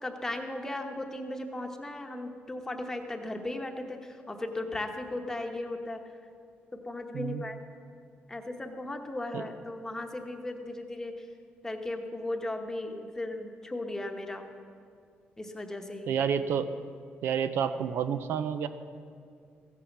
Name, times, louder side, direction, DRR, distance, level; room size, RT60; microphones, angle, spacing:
voice 1, 0.0-6.0 6.8-7.6 8.3-11.1 11.6-14.4 15.4-16.1, left 2 dB, 15° left, 4 dB, 1.0 m, -36 dB
voice 2, 7.1-7.4 9.3-9.5 16.1-16.7 17.2-18.7, right 7 dB, 80° right, 11 dB, 0.6 m, -29 dB
15.5 x 8.4 x 7.2 m, 2.3 s
cardioid pair, 155°, 4 cm